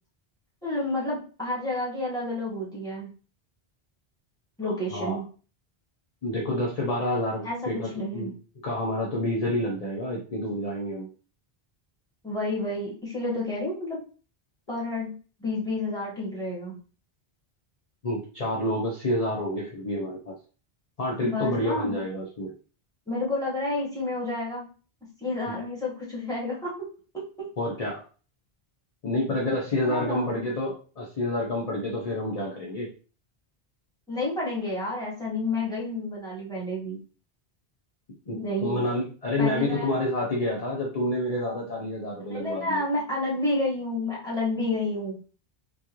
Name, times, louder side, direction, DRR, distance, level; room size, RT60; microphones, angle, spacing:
voice 1, 0.6-3.1 4.6-5.2 7.4-8.3 12.2-14.0 14.7-15.1 15.4-16.8 21.2-22.0 23.1-24.7 25.2-26.9 27.4-27.5 29.9-30.4 34.1-37.0 38.3-38.8 39.4-39.9 42.3-45.2, left 2 dB, 5° left, -6 dB, 1.4 m, -30 dB
voice 2, 4.6-5.2 6.2-8.3 8.6-11.1 18.0-20.3 21.0-22.5 27.6-28.0 29.0-32.9 38.3-42.8, left 1 dB, 40° left, -3 dB, 0.7 m, -28 dB
3.8 x 2.4 x 2.9 m, 0.37 s
omnidirectional pair, 1.0 m